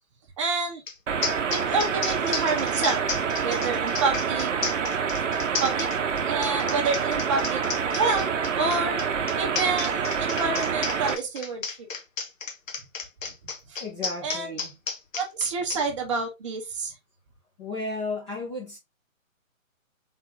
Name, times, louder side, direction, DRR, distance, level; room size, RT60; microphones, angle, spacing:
voice 1, 0.4-0.8 1.5-3.0 3.4-4.5 5.6-5.9 6.2-7.6 7.9-8.3 8.5-9.0 9.4-11.9 13.7-13.8 14.2-14.6 15.1-16.9, right 4 dB, 20° right, 0.8 m, -28 dB
sound 1, 0.9-1.0 1.2-15.8, left 5 dB, 70° left, 1.0 m, -33 dB
sound 2, 1.1-11.2, right 6 dB, 60° right, 0.7 m, -27 dB
voice 2, 13.8-14.8 17.6-18.8, left 2 dB, 20° left, 0.9 m, -34 dB
3.7 x 3.4 x 3.0 m
figure-of-eight pair, 145°, 41 cm